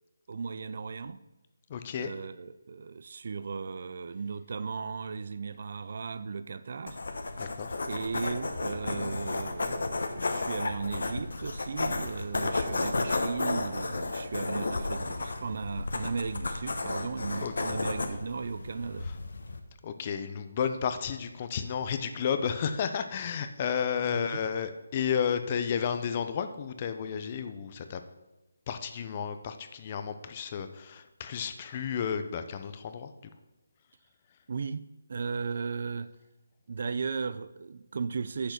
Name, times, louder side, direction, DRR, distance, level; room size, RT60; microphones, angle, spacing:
voice 1, 0.3-1.2 2.0-7.0 7.8-19.1 24.1-24.4 34.5-34.8 35.1-36.1 36.7-38.5, right 5 dB, 50° right, 0.4 m, -36 dB
voice 2, 1.7-2.1 7.4-7.7 17.4-17.5 19.8-28.0 28.7-33.1, left 7 dB, 30° left, 0.7 m, -32 dB
sound 1, 6.9-19.6, left 3 dB, 70° left, 1.1 m, -33 dB
7.8 x 6.6 x 5.9 m
figure-of-eight pair, 165°, 0 cm